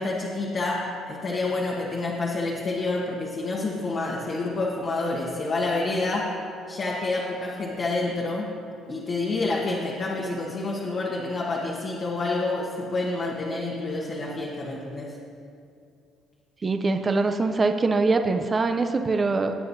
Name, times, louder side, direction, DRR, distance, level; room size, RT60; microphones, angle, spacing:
voice 1, 0.0-6.3 6.7-8.5 8.9-15.1, left 2 dB, 45° left, -3 dB, 1.3 m, -28 dB
voice 2, 16.6-19.5, right 3 dB, 25° right, 6 dB, 0.5 m, -23 dB
18.5 x 7.9 x 2.7 m, 2.5 s
cardioid pair, 105°, 0 cm